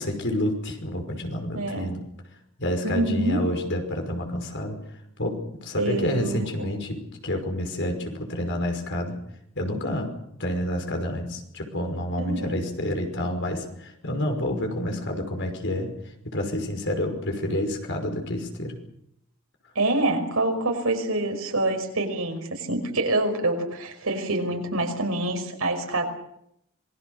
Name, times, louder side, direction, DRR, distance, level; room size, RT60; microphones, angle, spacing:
voice 1, 0.0-2.0 2.6-4.8 5.2-9.2 9.6-10.1 10.4-15.9 16.3-18.8, left 1 dB, 55° left, 4 dB, 5.5 m, -29 dB
voice 2, 1.5-1.9 2.8-3.4 5.8-6.7 12.2-12.6 19.8-26.1, right 2 dB, 75° right, 4 dB, 5.6 m, -26 dB
26.5 x 21.5 x 6.7 m, 0.75 s
head